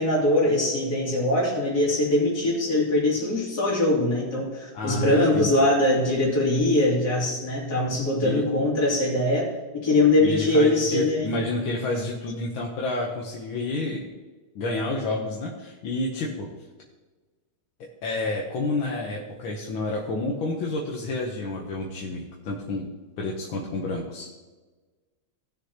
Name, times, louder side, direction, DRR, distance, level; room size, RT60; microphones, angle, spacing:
voice 1, 0.0-9.5 9.8-11.3, left 1 dB, 50° left, -5 dB, 3.3 m, -22 dB
voice 2, 4.7-5.6 8.2-8.4 10.2-14.1 14.5-16.5 18.0-22.9 23.2-24.3, left 2 dB, 80° left, -1 dB, 1.8 m, -29 dB
17.5 x 6.4 x 2.9 m, 1.3 s
omnidirectional pair, 2.2 m